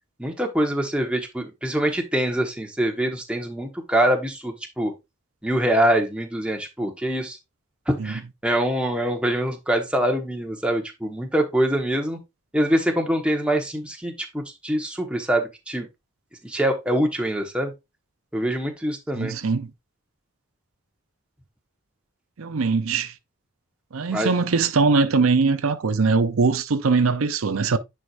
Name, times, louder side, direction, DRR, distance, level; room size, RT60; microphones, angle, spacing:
voice 1, 0.2-4.9 5.4-7.4 7.9-12.2 12.5-15.9 16.4-17.7 18.3-19.3 24.1-24.3, right 1 dB, 5° right, 1.2 m, -24 dB
voice 2, 19.1-19.7 22.4-23.1 23.9-27.8, right 4 dB, 75° right, 0.6 m, -21 dB
9.7 x 4.7 x 2.5 m
head